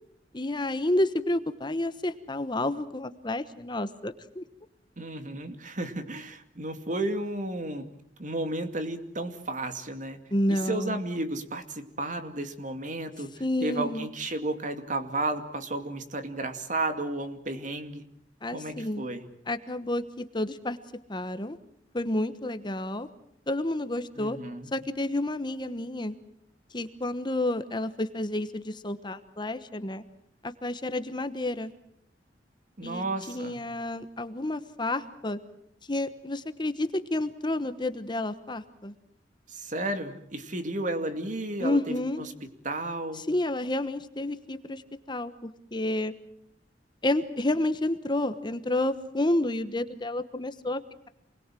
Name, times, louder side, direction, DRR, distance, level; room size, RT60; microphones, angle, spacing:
voice 1, 0.3-4.4 10.3-11.0 13.4-14.1 18.4-19.0 19.5-20.8 21.1-21.6 21.9-23.1 23.5-24.4 24.7-26.1 26.7-30.0 30.4-31.7 32.8-35.4 35.9-38.9 41.6-42.2 43.1-44.8 45.1-46.1 47.0-50.8, left 1 dB, 25° left, 11 dB, 1.2 m, -30 dB
voice 2, 5.0-7.9 8.2-10.2 10.5-18.0 18.5-19.3 24.2-24.7 32.8-33.6 39.5-42.3 42.6-43.3, right 2 dB, 45° right, 8 dB, 2.4 m, -33 dB
28.0 x 21.0 x 7.6 m, 0.73 s
head